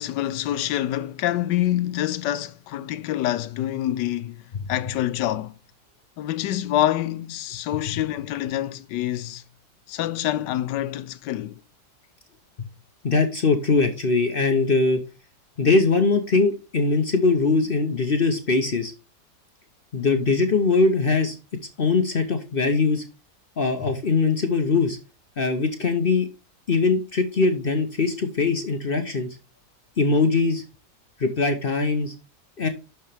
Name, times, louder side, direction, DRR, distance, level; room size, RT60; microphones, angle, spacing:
voice 1, 0.0-4.4 4.7-5.5 6.2-9.4 9.9-11.6, left 13 dB, 85° left, 1.2 m, -26 dB
voice 2, 13.0-15.0 15.6-18.9 19.9-21.4 21.8-23.0 23.6-25.0 25.4-26.3 26.7-29.3 30.0-30.6 31.2-32.1 32.6-32.7, left 4 dB, 45° left, 0.7 m, -21 dB
11.5 x 4.4 x 3.3 m
omnidirectional pair, 1.8 m